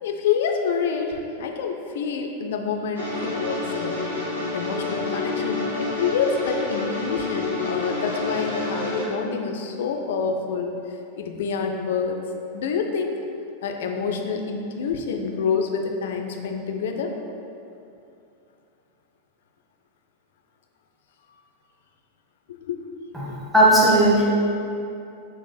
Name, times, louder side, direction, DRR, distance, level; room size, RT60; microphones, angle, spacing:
voice 1, 0.0-4.1 4.5-10.8 11.2-12.2 12.5-13.2 13.6-17.2 22.5-22.8, left 5 dB, 55° left, 3 dB, 0.3 m, -27 dB
sound 1, 2.9-9.0, left 3 dB, 85° right, 0.9 m, -28 dB
voice 2, 23.1-24.3, right 1 dB, 10° right, -6 dB, 0.9 m, -17 dB
3.7 x 2.4 x 4.0 m, 2.7 s
figure-of-eight pair, 90°, 0 cm